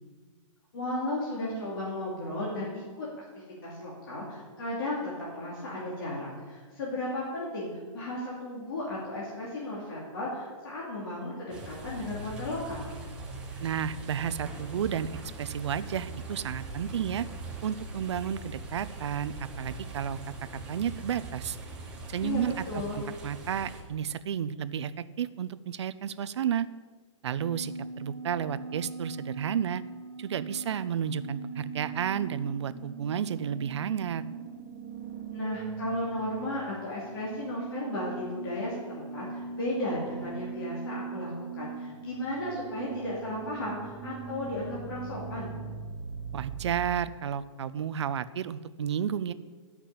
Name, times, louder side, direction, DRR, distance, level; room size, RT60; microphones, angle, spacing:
voice 1, 0.7-3.1 3.6-12.9 22.2-23.0 35.3-45.5, left 1 dB, 45° left, -6 dB, 2.8 m, -35 dB
sound 1, 11.5-23.8, right 2 dB, 5° right, 0.8 m, -41 dB
voice 2, 13.6-15.1 15.4-17.3 17.6-20.2 20.7-21.6 22.1-26.7 27.2-29.8 30.2-34.2 46.3-49.3, right 8 dB, 55° right, 15 dB, 0.5 m, -32 dB
sound 2, 27.4-46.9, right 5 dB, 30° right, 1.3 m, -40 dB
10.5 x 5.8 x 8.3 m, 1.5 s
hypercardioid pair, 180°, 17 cm